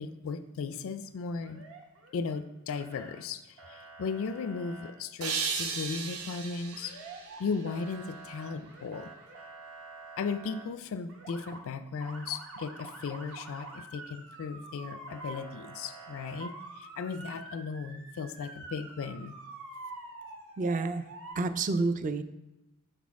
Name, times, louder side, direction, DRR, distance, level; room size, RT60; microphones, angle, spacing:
voice 1, 0.0-1.6 2.1-7.0 7.4-9.1 10.2-19.3, left 5 dB, 65° left, 11 dB, 0.4 m, -36 dB
Motor vehicle (road) / Siren, 1.4-2.4 2.7-3.2 3.6-4.9 6.7-7.4 7.7-10.6 11.1-11.6 12.0-21.3, right 3 dB, 65° right, 1.1 m, -47 dB
sound 1, 5.2-8.3, right 5 dB, 85° right, 0.8 m, -36 dB
voice 2, 20.6-21.0 21.3-22.2, right 3 dB, 35° right, 11 dB, 0.4 m, -29 dB
6.4 x 4.2 x 4.7 m, 0.98 s
head